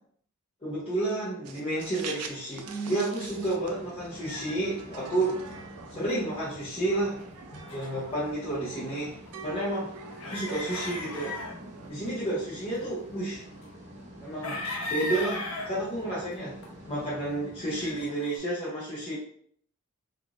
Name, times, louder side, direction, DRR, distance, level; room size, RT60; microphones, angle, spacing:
voice 1, 0.6-5.4 5.9-7.2 7.7-9.1 9.4-9.9 10.2-11.4 11.9-13.4 14.2-14.6 14.9-16.6 16.9-19.1, right 2 dB, 25° left, -9 dB, 0.7 m, -31 dB
sound 1, 1.4-11.9, right 5 dB, 90° right, 0.4 m, -45 dB
sound 2, 3.2-18.1, equal, 35° right, 0.8 m, -47 dB
sound 3, 4.3-4.6 5.0-5.6 7.1-8.2 8.5-9.4 10.1-11.6 12.6-13.1 14.4-15.7 16.6-16.7 17.8-18.4, left 2 dB, 65° left, 0.6 m, -36 dB
3.5 x 2.4 x 2.4 m, 0.62 s
head